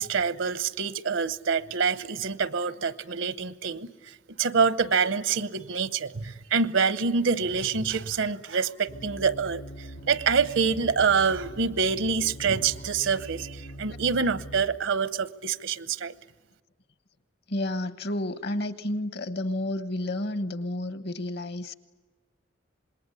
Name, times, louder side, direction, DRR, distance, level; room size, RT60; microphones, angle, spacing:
voice 1, 0.0-16.1, right 5 dB, 75° right, 0.9 m, -26 dB
sound 1, 8.9-14.7, equal, 80° left, 5.5 m, -42 dB
voice 2, 17.5-21.8, left 1 dB, 55° left, 1.2 m, -31 dB
26.5 x 21.0 x 9.8 m
head